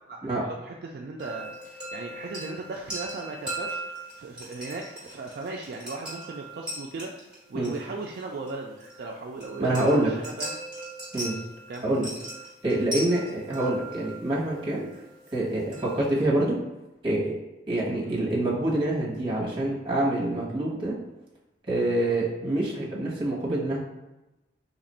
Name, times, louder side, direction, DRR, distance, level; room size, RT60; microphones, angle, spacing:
voice 1, 0.0-1.6 1.9-10.6 11.7-11.9 13.5-13.7 18.0-18.2 22.4-22.6, right 3 dB, 60° right, 0 dB, 0.3 m, -37 dB
sound 1, 1.2-16.1, right 1 dB, 5° right, 1.4 m, -40 dB
voice 2, 9.6-10.1 11.1-11.4 11.8-12.1 12.6-14.8 15.3-16.6 17.0-17.3 17.7-21.0 21.7-23.8, right 1 dB, 30° right, -5 dB, 1.0 m, -26 dB
2.9 x 2.5 x 4.1 m, 1.0 s
head